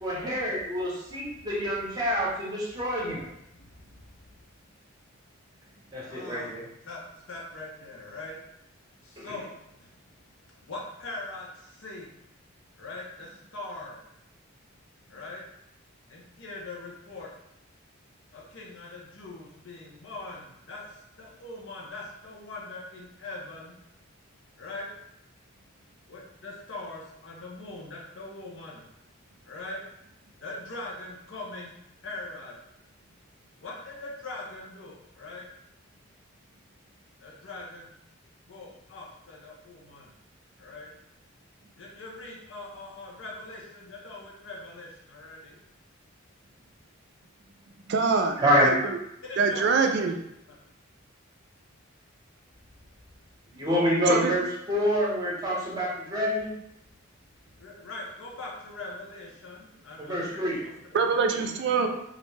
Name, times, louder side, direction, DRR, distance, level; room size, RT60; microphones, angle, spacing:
voice 1, 0.0-3.2 5.9-6.7 9.2-9.3 48.4-48.8 53.5-56.5 60.0-60.6, equal, 20° right, -5 dB, 0.7 m, -27 dB
voice 2, 3.6-4.3 6.0-6.5 6.9-8.4 9.0-12.1 12.8-14.0 15.1-15.4 16.1-17.3 18.3-23.8 24.6-24.9 26.1-29.1 29.5-29.8 30.4-31.7 32.0-32.5 33.6-35.5 37.2-37.9 38.5-40.1 40.6-40.9 41.8-45.6 49.2-50.1 52.8-52.9 53.6-54.1 56.9-57.0 57.6-60.5 61.0-61.2, left 2 dB, 65° left, -3 dB, 0.6 m, -42 dB
voice 3, 47.9-48.4 48.6-48.7 49.4-50.1 54.1-54.3 60.9-61.9, right 5 dB, 55° right, 5 dB, 0.3 m, -24 dB
2.4 x 2.1 x 3.2 m, 0.80 s
head